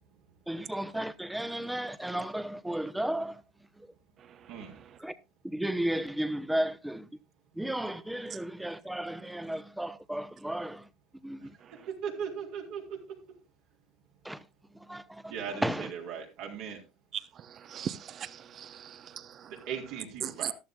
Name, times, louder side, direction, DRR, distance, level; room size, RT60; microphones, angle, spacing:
voice 1, 0.5-3.3 5.0-5.1 5.5-7.0 7.6-10.8 11.2-11.4 14.3-14.4 14.9-15.0 15.6-15.8, right 1 dB, 5° right, 0.9 m, -33 dB
voice 2, 11.9-13.0 15.3-16.8 19.7-20.5, right 7 dB, 70° right, 3.9 m, -38 dB
voice 3, 17.5-19.5 20.2-20.5, right 9 dB, 40° right, 0.9 m, -38 dB
14.0 x 11.5 x 2.4 m
supercardioid pair, 110°, 0 cm